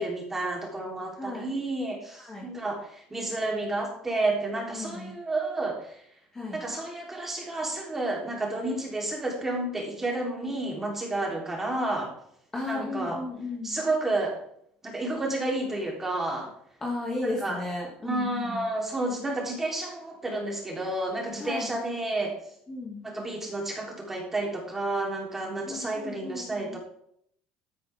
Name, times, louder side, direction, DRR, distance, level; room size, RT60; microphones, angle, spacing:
voice 1, 0.0-5.9 6.5-12.1 12.7-13.2 13.6-14.4 14.8-16.5 17.4-17.6 18.0-22.4 23.0-26.8, right 2 dB, 10° right, -1 dB, 3.6 m, -30 dB
voice 2, 1.1-1.5 2.1-2.5 4.7-5.1 6.3-6.6 12.5-13.8 16.8-18.7 21.3-21.7 22.7-23.1 25.6-26.8, left 2 dB, 15° left, -2 dB, 2.3 m, -35 dB
13.0 x 12.5 x 3.6 m, 0.68 s
cardioid pair, 170°, 3 cm